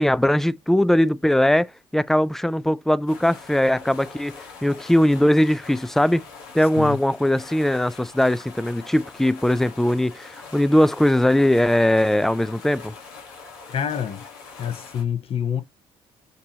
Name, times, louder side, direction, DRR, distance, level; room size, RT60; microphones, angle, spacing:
voice 1, 0.0-6.2 6.5-12.9, left 1 dB, 5° left, 0.3 m, -20 dB
sound 1, 3.1-15.0, left 4 dB, 90° left, 1.4 m, -43 dB
voice 2, 13.7-14.2 14.6-15.6, left 8 dB, 50° left, 0.8 m, -27 dB
6.7 x 2.8 x 2.8 m
hypercardioid pair, 60°, 12 cm